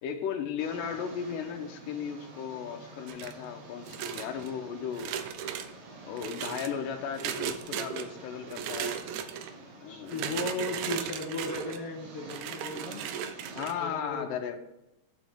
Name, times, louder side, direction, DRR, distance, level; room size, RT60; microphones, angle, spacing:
voice 1, 0.0-5.1 6.0-9.0 9.8-10.7 13.6-14.6, left 7 dB, 85° left, 4 dB, 2.5 m, -36 dB
sound 1, 0.6-13.6, right 2 dB, 55° right, 2.4 m, -48 dB
sound 2, 3.1-3.5 3.9-4.5 4.9-5.7 6.2-6.7 7.2-8.1 8.5-9.5 10.1-11.8 12.3-13.7, right 9 dB, 75° right, 1.8 m, -36 dB
voice 2, 9.9-13.0 13.8-14.3, left 3 dB, 55° left, 0 dB, 1.8 m, -36 dB
9.5 x 7.3 x 3.6 m, 0.91 s
omnidirectional pair, 3.8 m